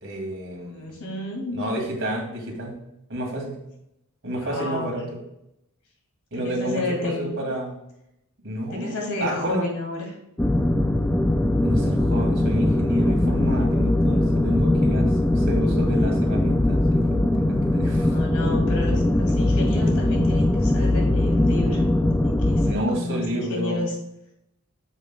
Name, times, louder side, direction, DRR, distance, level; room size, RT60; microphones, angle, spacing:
voice 1, 0.0-0.9 1.5-2.8 3.1-3.6 4.2-5.2 6.3-7.7 8.4-9.6 11.6-18.2 22.6-23.8, right 1 dB, 60° right, 0 dB, 2.2 m, -30 dB
voice 2, 0.7-1.6 4.4-5.0 6.3-7.3 8.7-10.2 18.0-21.8 22.1-24.0, left 2 dB, 80° left, 0 dB, 2.4 m, -31 dB
sound 1, 10.4-22.7, left 1 dB, 10° left, 0.3 m, -21 dB
8.1 x 7.5 x 2.3 m, 0.83 s
head